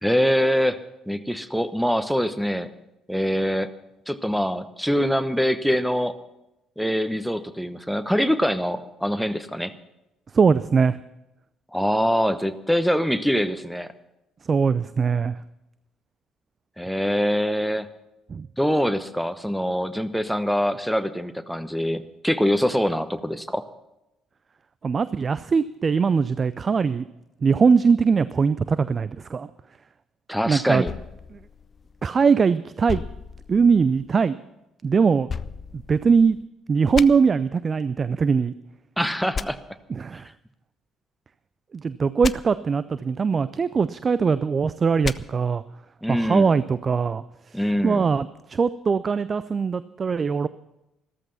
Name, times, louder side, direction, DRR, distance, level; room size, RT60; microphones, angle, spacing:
voice 1, 0.0-0.8 1.1-2.7 3.1-3.7 4.1-6.2 6.8-9.7 11.7-13.9 16.8-17.9 18.6-23.6 30.3-30.9 39.0-39.6 46.0-46.6 47.5-48.1, equal, ahead, 10 dB, 1.1 m, -24 dB
voice 2, 10.3-11.0 14.5-15.3 18.3-18.5 24.8-27.0 27.4-29.5 30.5-30.8 31.3-31.4 32.0-33.0 33.5-34.4 34.8-35.3 35.7-36.4 36.7-38.5 39.9-40.3 41.7-45.6 46.1-50.5, right 5 dB, 40° right, 16 dB, 0.5 m, -21 dB
sound 1, 30.8-32.3 32.9-34.1 35.3-36.4 36.9-37.1 39.3-39.5 42.2-42.3 45.0-45.2, left 5 dB, 40° left, 0.5 m, -33 dB
14.0 x 14.0 x 5.7 m, 0.92 s
figure-of-eight pair, 50°, 0 cm